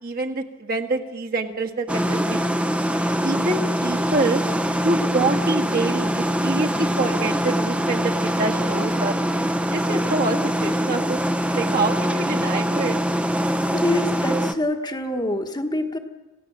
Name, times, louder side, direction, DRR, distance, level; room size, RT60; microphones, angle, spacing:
voice 1, 0.0-2.4 3.2-4.4 4.8-9.2 9.7-13.0, right 2 dB, 45° right, 1 dB, 1.7 m, -26 dB
sound 1, 1.9-14.5, equal, 5° right, 0.7 m, -23 dB
voice 2, 13.7-16.0, left 1 dB, 20° left, 4 dB, 1.3 m, -25 dB
27.5 x 16.5 x 7.3 m, 1.2 s
head